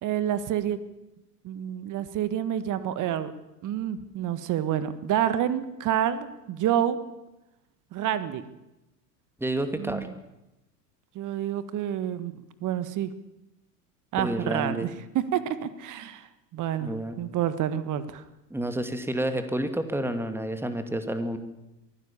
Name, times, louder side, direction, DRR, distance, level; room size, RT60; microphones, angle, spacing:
voice 1, 0.0-0.8 1.4-3.3 3.6-7.0 7.9-8.4 9.7-10.1 11.1-13.1 14.1-14.9 15.3-16.3 16.5-18.2, right 10 dB, 40° right, 13 dB, 1.6 m, -28 dB
voice 2, 9.4-10.1 14.2-14.9 16.8-17.2 18.5-21.4, right 1 dB, 5° right, 8 dB, 2.4 m, -29 dB
23.0 x 16.0 x 7.3 m, 0.95 s
hypercardioid pair, 85°, 48 cm